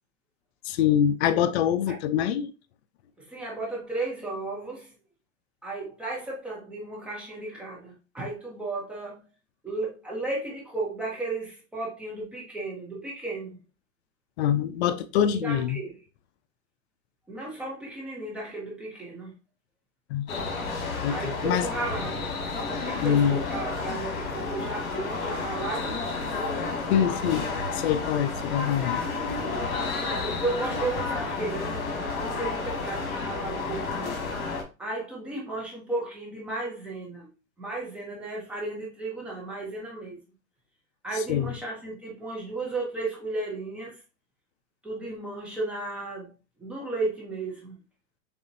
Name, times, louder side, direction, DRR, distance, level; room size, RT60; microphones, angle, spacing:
voice 1, 0.6-2.5 14.4-15.8 20.1-20.3 21.0-21.7 23.0-23.4 26.9-27.5 27.7-29.0 41.3-41.5, left 9 dB, 50° left, 0.5 m, -24 dB
voice 2, 3.2-4.9 5.6-9.2 9.6-13.6 15.3-16.0 17.3-19.3 21.1-22.4 22.7-26.1 30.0-34.2 34.8-37.3 37.6-40.2 41.0-44.0 44.8-46.3 46.6-47.7, right 2 dB, 5° right, 0.3 m, -34 dB
sound 1, 20.3-34.6, left 4 dB, 75° left, 1.9 m, -31 dB
6.9 x 2.5 x 2.6 m
supercardioid pair, 150°, 42 cm